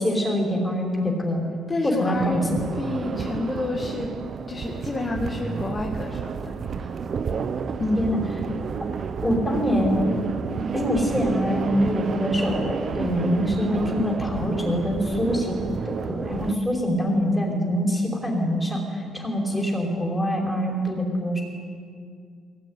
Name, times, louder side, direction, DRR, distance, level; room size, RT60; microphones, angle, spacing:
voice 1, 0.0-1.4 1.8-2.6 8.0-8.2 9.2-10.2 10.7-21.4, equal, 5° left, 0 dB, 5.0 m, -24 dB
voice 2, 1.7-2.5 2.8-4.1 4.5-6.9 7.8-8.1 19.5-19.6, left 2 dB, 20° left, 0 dB, 2.0 m, -29 dB
sound 1, 2.1-16.5, right 6 dB, 35° right, 0.9 m, -30 dB
23.0 x 18.5 x 9.9 m, 2.2 s
cardioid pair, 160°, 0 cm